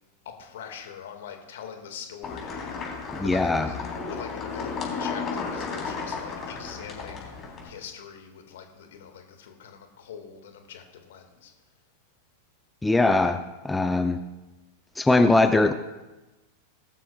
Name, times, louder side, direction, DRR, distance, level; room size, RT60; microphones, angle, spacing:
voice 1, 0.3-2.8 3.2-3.8 4.1-11.5, left 8 dB, 60° left, 5 dB, 1.9 m, -43 dB
sound 1, 2.2-7.7, left 5 dB, 25° left, 3.6 m, -34 dB
voice 2, 3.1-3.7 12.8-13.4 13.6-14.2 15.0-15.7, left 2 dB, 5° left, 8 dB, 0.5 m, -21 dB
20.5 x 12.0 x 2.4 m, 1.1 s
figure-of-eight pair, 90°, 0 cm